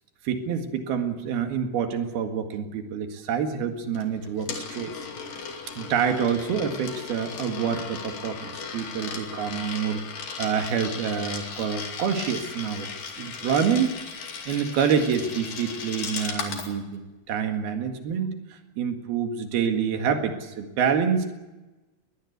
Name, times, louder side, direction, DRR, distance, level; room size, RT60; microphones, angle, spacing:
voice 1, 0.2-5.0 5.8-10.0 10.4-12.9 13.2-13.9 14.5-21.3, right 7 dB, 65° right, 6 dB, 3.7 m, -27 dB
Coin (dropping), 4.0-16.7, left 5 dB, 55° left, 4.0 m, -36 dB
21.0 x 20.0 x 8.1 m, 1.1 s
omnidirectional pair, 4.8 m